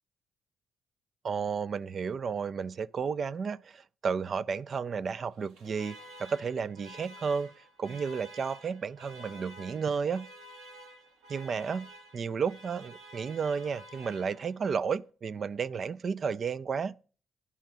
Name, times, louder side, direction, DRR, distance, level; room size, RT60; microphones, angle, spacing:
voice 1, 1.2-7.5 7.8-10.3 11.3-16.9, right 6 dB, 45° right, 0.4 m, -32 dB
Alarm, 5.3-14.7, right 1 dB, 85° right, 1.2 m, -51 dB
10.5 x 5.7 x 6.0 m
cardioid pair, 100°, 0 cm